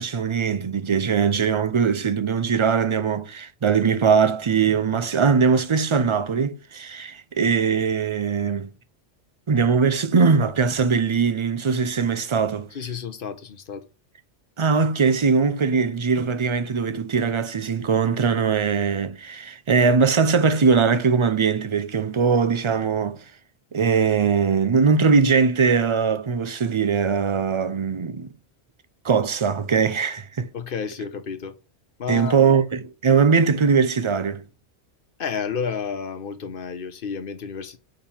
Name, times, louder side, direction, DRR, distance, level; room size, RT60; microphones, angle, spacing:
voice 1, 0.0-8.7 9.5-12.7 14.6-23.2 23.7-28.3 29.0-30.5 32.1-34.4, right 5 dB, 45° right, 0.4 m, -21 dB
voice 2, 12.7-13.9 30.5-31.6 32.0-32.4 35.2-37.8, left 6 dB, 55° left, 0.9 m, -31 dB
5.3 x 4.3 x 5.5 m
omnidirectional pair, 1.2 m